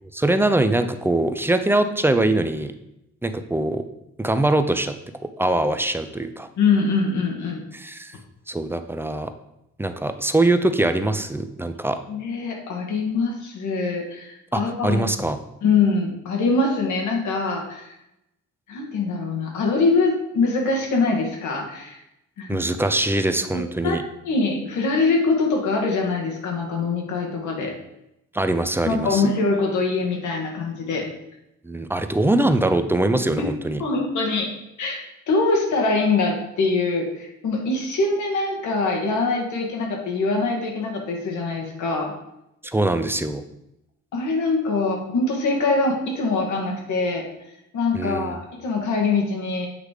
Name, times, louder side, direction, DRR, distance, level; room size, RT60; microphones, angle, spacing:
voice 1, 0.0-2.7 3.2-3.8 4.2-4.9 5.4-6.5 7.7-8.1 8.5-9.3 9.8-12.0 14.5-15.4 22.5-24.0 28.3-29.2 31.6-33.8 42.6-43.4 47.9-48.4, right 2 dB, 10° right, 9 dB, 0.5 m, -22 dB
voice 2, 6.6-7.6 12.1-15.0 15.6-17.9 18.7-22.0 22.4-22.6 23.5-27.8 28.8-31.1 33.8-34.5 34.8-42.1 44.1-47.3 47.7-49.7, left 3 dB, 75° left, 1 dB, 1.7 m, -23 dB
8.3 x 3.2 x 4.9 m, 0.86 s
cardioid pair, 90°, 30 cm